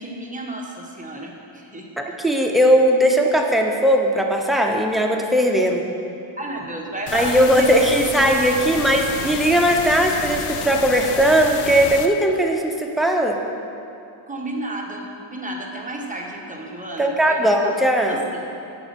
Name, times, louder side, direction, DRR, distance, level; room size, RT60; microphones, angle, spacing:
voice 1, 0.0-1.9 6.4-7.9 14.3-17.8 18.1-18.4, right 1 dB, 15° right, -1 dB, 1.3 m, -31 dB
voice 2, 2.0-5.8 7.1-13.4 17.0-18.2, equal, ahead, 1 dB, 0.9 m, -18 dB
sound 1, 7.1-12.1, left 7 dB, 85° left, 0.7 m, -30 dB
9.6 x 6.4 x 5.3 m, 2.7 s
cardioid pair, 90°, 49 cm